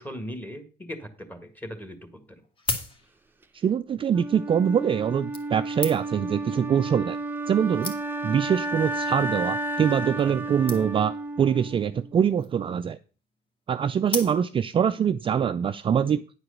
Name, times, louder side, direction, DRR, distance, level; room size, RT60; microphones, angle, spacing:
voice 1, 0.0-2.4, equal, 10° left, 8 dB, 1.6 m, -39 dB
sound 1, 1.5-1.6 2.4-3.5 4.4-4.5 5.3-6.3 7.1-7.2 7.5-7.6 7.8-8.4 9.1-9.3 9.6-9.7 9.9-10.0 10.2-10.3 10.7-11.2 12.2-12.6 14.1-14.8 15.3-15.4, left 3 dB, 30° left, 1.7 m, -35 dB
voice 2, 3.5-7.2 7.5-7.9 8.2-13.0 13.7-16.2, right 8 dB, 30° right, 10 dB, 0.3 m, -24 dB
Wind instrument woodwind instrument, 4.1-12.1, right 2 dB, 10° right, 0.7 m, -32 dB
9.6 x 4.7 x 6.5 m, 0.37 s
cardioid pair, 110°, 17 cm